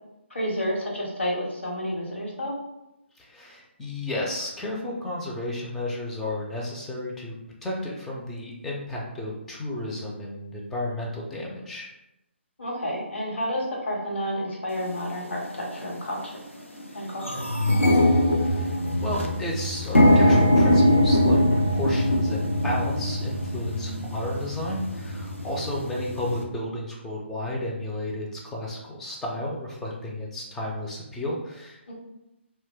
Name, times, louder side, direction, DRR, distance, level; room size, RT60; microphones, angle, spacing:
voice 1, 0.3-2.5 12.6-16.3 16.9-17.5 31.9-32.0, equal, 65° left, -3 dB, 1.0 m, -30 dB
voice 2, 3.2-7.4 7.6-11.9 18.3-21.4 21.7-31.9, left 1 dB, 5° left, -4 dB, 0.3 m, -32 dB
sound 1, 14.9-15.0 15.7-16.0 16.4-16.5 16.7-26.4, left 1 dB, 85° left, 0.6 m, -22 dB
2.6 x 2.1 x 3.4 m, 0.91 s
figure-of-eight pair, 140°, 7 cm